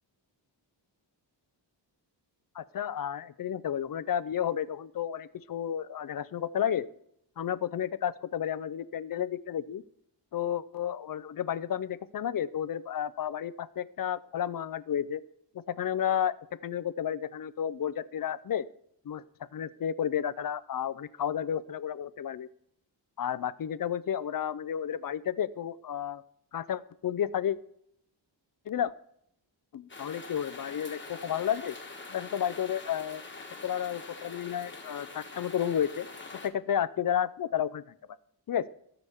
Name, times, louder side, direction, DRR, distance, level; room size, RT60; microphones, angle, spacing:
voice 1, 2.6-6.9 7.4-9.8 10.3-15.2 15.5-16.4 16.6-18.7 19.1-19.2 19.5-22.5 23.2-26.2 26.5-27.6 28.7-28.9 29.7-31.8 32.1-33.2 33.6-36.1 36.4-37.8 38.5-38.7, left 9 dB, 50° left, 16 dB, 0.5 m, -32 dB
sound 1, 29.9-36.5, left 3 dB, 25° left, 1.3 m, -45 dB
17.5 x 6.9 x 3.5 m, 0.70 s
wide cardioid pair, 125°, 45 cm